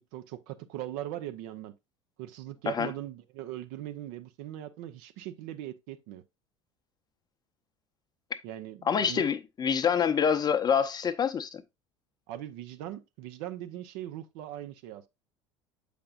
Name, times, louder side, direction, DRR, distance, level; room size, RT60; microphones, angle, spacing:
voice 1, 0.1-1.7 2.2-6.2 8.4-9.2 12.3-15.1, right 13 dB, 55° right, 0.7 m, -40 dB
voice 2, 8.8-11.6, left 7 dB, 25° left, 0.7 m, -26 dB
7.7 x 5.1 x 2.4 m
figure-of-eight pair, 70°, 16 cm